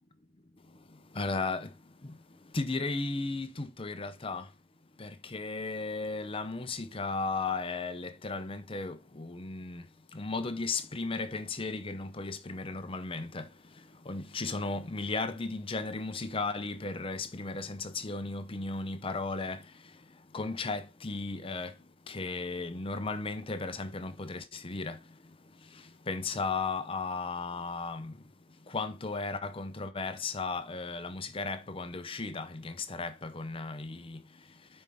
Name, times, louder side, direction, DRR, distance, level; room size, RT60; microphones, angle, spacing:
voice 1, 1.1-1.7 2.0-2.2 2.5-4.5 5.0-9.8 10.1-13.5 14.0-19.6 20.3-21.7 22.1-25.0 25.7-28.1 28.7-34.2, left 3 dB, 30° left, 0.7 m, -35 dB
8.9 x 5.4 x 3.5 m
head